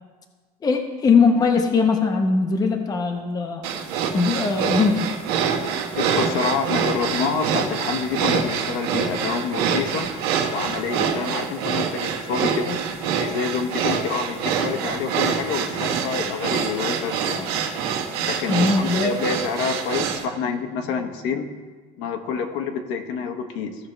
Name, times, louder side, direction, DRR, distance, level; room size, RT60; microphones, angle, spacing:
voice 1, 0.6-3.6 4.1-5.1 18.5-19.2, left 4 dB, 20° left, 4 dB, 0.7 m, -20 dB
sound 1, 3.6-20.2, right 7 dB, 85° right, 1.3 m, -25 dB
voice 2, 6.0-10.1 10.5-12.8 13.2-17.5 18.3-21.6 22.0-23.9, left 5 dB, 70° left, 5 dB, 1.1 m, -27 dB
16.0 x 5.7 x 3.3 m, 1.4 s
cardioid pair, 140°, 19 cm